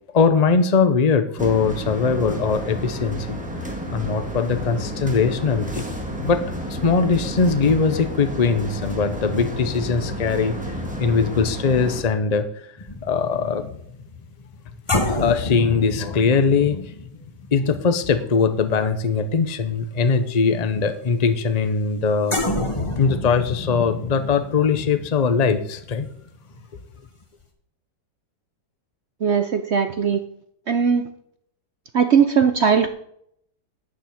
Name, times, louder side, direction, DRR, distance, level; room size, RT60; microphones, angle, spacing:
voice 1, 0.1-3.4 3.9-5.9 6.2-6.4 6.7-10.5 11.0-12.5 13.0-13.7 15.0-16.9 17.5-22.4 23.0-26.1, left 5 dB, 60° left, 9 dB, 0.4 m, -21 dB
sound 1, 1.4-12.0, equal, 5° right, 1.9 m, -31 dB
sound 2, 12.8-19.4 19.7-20.0 22.3-26.9 27.2-27.4, left 2 dB, 20° left, 1.5 m, -30 dB
voice 2, 29.2-30.2 30.7-31.0 31.9-32.9, right 6 dB, 60° right, 8 dB, 0.7 m, -19 dB
12.0 x 5.0 x 8.5 m, 0.69 s
omnidirectional pair, 1.9 m